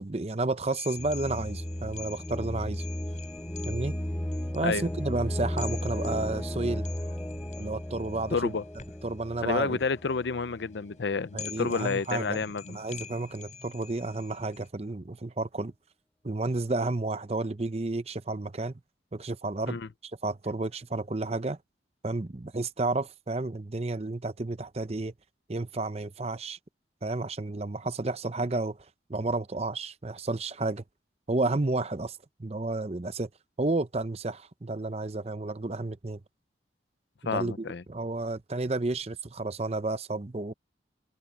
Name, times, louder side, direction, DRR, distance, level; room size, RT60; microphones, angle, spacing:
voice 1, 0.0-2.8 3.6-4.0 4.5-6.9 7.6-8.5 9.0-9.8 11.3-15.7 16.2-18.7 19.1-19.8 20.2-21.6 22.0-25.1 25.5-26.6 27.0-30.8 31.3-33.3 33.6-36.2 37.2-40.5, right 2 dB, 35° right, 0.7 m, -31 dB
sound 1, 0.7-14.7, left 7 dB, 40° left, 4.4 m, -47 dB
sound 2, 1.0-10.8, left 1 dB, 10° left, 0.7 m, -35 dB
voice 2, 8.3-8.6 9.4-12.8 19.7-19.9 37.3-37.8, left 4 dB, 75° left, 0.6 m, -30 dB
head